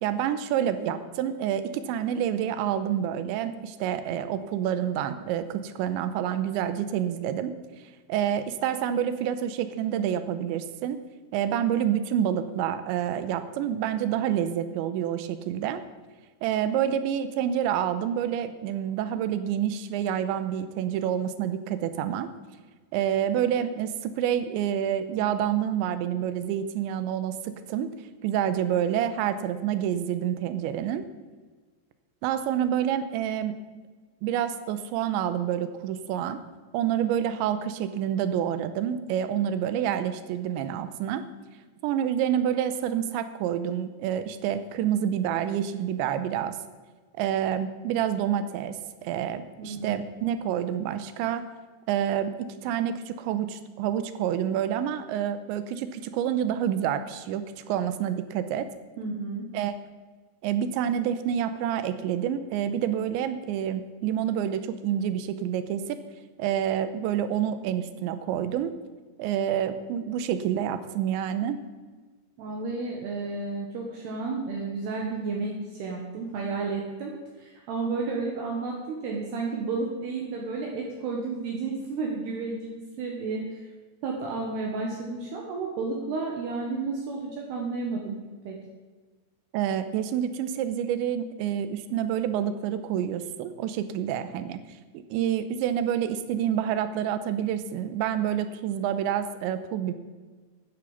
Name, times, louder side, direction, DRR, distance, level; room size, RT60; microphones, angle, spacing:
voice 1, 0.0-7.5 8.1-11.0 11.3-15.8 16.4-22.3 22.9-27.9 28.2-31.0 32.2-33.6 34.2-36.4 36.7-41.2 41.8-46.6 47.2-48.8 49.0-51.5 51.9-58.7 59.5-59.8 60.4-66.0 66.4-68.7 69.2-71.6 89.5-94.6 94.9-99.9, right 9 dB, 85° right, 11 dB, 3.0 m, -28 dB
voice 2, 49.6-50.0 59.0-59.5 72.4-77.1 77.4-83.7 84.0-88.2 88.4-88.6, right 4 dB, 65° right, -1 dB, 3.3 m, -32 dB
11.0 x 9.9 x 7.3 m, 1.4 s
omnidirectional pair, 5.4 m